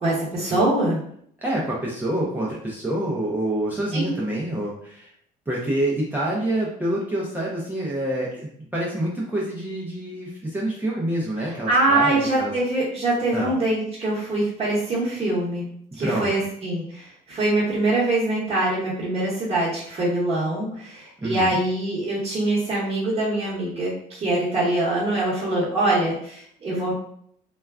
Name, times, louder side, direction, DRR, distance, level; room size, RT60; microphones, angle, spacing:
voice 1, 0.0-1.0 3.9-4.1 11.7-15.6 15.9-26.9, right 2 dB, 35° right, -8 dB, 1.0 m, -23 dB
voice 2, 1.4-5.1 5.5-12.5 13.3-13.5 16.0-16.3 21.2-21.6, right 1 dB, 10° right, -5 dB, 0.5 m, -27 dB
2.3 x 2.2 x 3.4 m, 0.65 s
cardioid pair, 110°, 17 cm